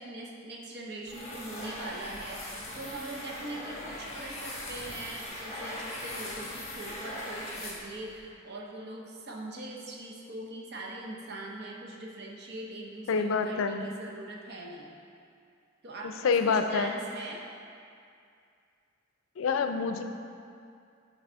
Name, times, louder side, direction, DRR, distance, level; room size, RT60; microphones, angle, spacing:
voice 1, 0.0-14.9 15.8-17.4, right 2 dB, 55° right, -1 dB, 0.7 m, -42 dB
sound 1, 1.1-8.2, left 1 dB, 35° left, 1.2 m, -40 dB
voice 2, 13.1-13.9 16.0-16.9 19.4-20.0, left 5 dB, 90° left, 7 dB, 0.4 m, -27 dB
5.9 x 4.0 x 4.3 m, 2.4 s
head